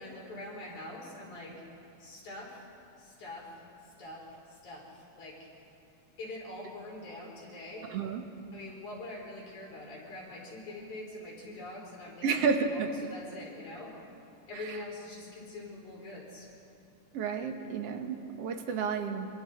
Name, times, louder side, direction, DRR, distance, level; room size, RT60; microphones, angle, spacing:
voice 1, 0.0-1.6 2.0-2.7 3.0-3.5 4.0-4.2 4.5-5.5 6.2-7.9 8.5-12.3 12.7-13.9 14.5-16.5, left 2 dB, 70° left, -3 dB, 6.0 m, -44 dB
voice 2, 7.9-8.2 12.2-12.9 14.5-14.8 17.1-19.3, right 5 dB, 55° right, 5 dB, 2.2 m, -31 dB
27.5 x 26.0 x 4.5 m, 2.7 s
omnidirectional pair, 3.6 m